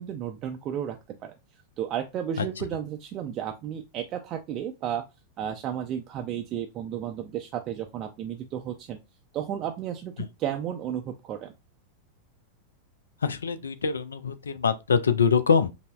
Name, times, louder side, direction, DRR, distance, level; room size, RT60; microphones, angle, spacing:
voice 1, 0.0-1.3 1.8-5.0 5.4-9.0 9.3-11.5, right 10 dB, 35° right, 0.4 m, -33 dB
voice 2, 13.2-15.7, left 6 dB, 70° left, 0.3 m, -24 dB
5.2 x 2.0 x 2.3 m
figure-of-eight pair, 90°, 0 cm